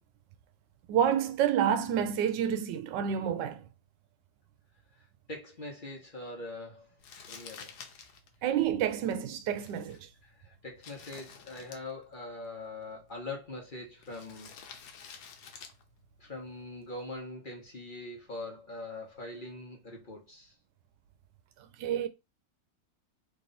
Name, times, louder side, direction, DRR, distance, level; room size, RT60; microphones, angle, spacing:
voice 1, 0.9-3.7 8.4-10.1 21.6-22.1, right 9 dB, 85° right, 1.3 m, -29 dB
voice 2, 4.9-6.9 7.3-7.7 10.3-14.5 16.2-20.5, left 2 dB, 35° left, 0.9 m, -42 dB
Crumpling crinkling, 7.0-17.2, left 6 dB, 70° left, 1.3 m, -52 dB
3.3 x 3.0 x 3.8 m
omnidirectional pair, 1.9 m